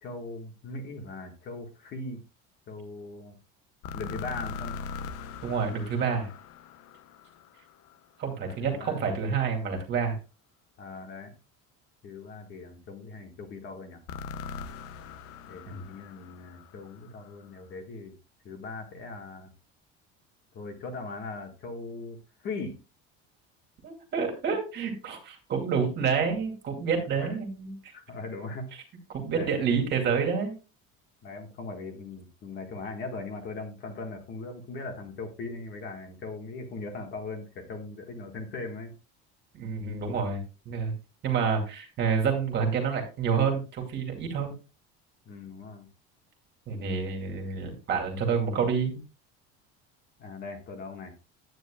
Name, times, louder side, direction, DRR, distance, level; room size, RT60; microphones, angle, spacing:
voice 1, 0.0-2.2 2.7-3.4 3.9-4.8 8.4-9.0 10.8-11.3 12.0-14.0 15.5-18.1 18.4-19.5 20.5-22.8 27.2-27.3 27.9-28.7 29.4-29.8 31.2-38.9 45.2-45.9 50.2-51.1, left 3 dB, 35° left, 4 dB, 1.7 m, -39 dB
sound 1, 3.8-7.9 14.1-17.2, left 5 dB, 50° left, 0.7 m, -40 dB
voice 2, 5.4-6.3 8.2-10.2 15.7-15.9 23.8-27.9 29.1-30.5 39.5-40.9 41.2-44.5 46.7-49.0, right 6 dB, 35° right, 3 dB, 2.4 m, -28 dB
9.4 x 9.3 x 2.4 m, 0.30 s
cardioid pair, 175°, 29 cm